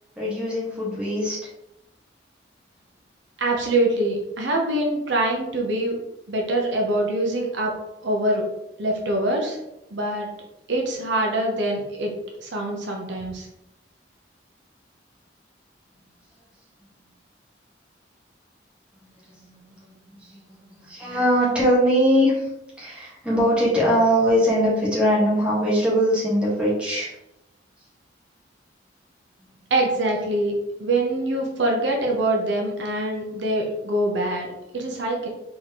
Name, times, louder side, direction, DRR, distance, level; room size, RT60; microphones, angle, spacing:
voice 1, 0.2-1.4 19.2-19.6 20.1-20.4 20.8-22.5 22.8-27.1, equal, 5° right, -8 dB, 1.7 m, -21 dB
voice 2, 3.4-6.0 6.3-7.7 8.0-8.4 8.8-9.6 9.9-10.3 10.7-12.1 12.4-13.5 29.7-35.3, right 1 dB, 75° right, 0 dB, 0.9 m, -24 dB
4.2 x 3.9 x 3.0 m, 0.87 s
head